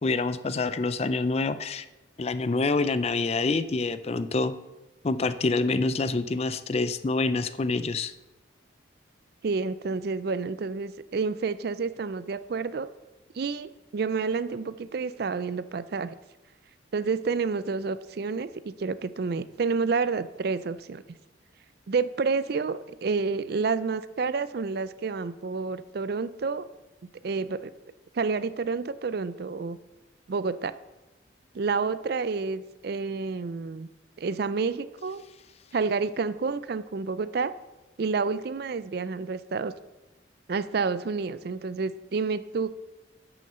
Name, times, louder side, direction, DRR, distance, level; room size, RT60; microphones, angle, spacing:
voice 1, 0.0-1.9 2.2-4.5 5.0-8.1, left 3 dB, 30° left, 13 dB, 0.4 m, -26 dB
voice 2, 9.4-12.9 13.3-16.1 16.9-21.0 21.9-26.7 27.2-27.7 28.1-29.8 30.3-30.7 31.5-33.9 34.2-35.2 35.7-37.5 38.0-39.7 40.5-42.7, right 4 dB, 50° right, 15 dB, 0.4 m, -29 dB
8.5 x 6.4 x 6.8 m, 1.1 s
head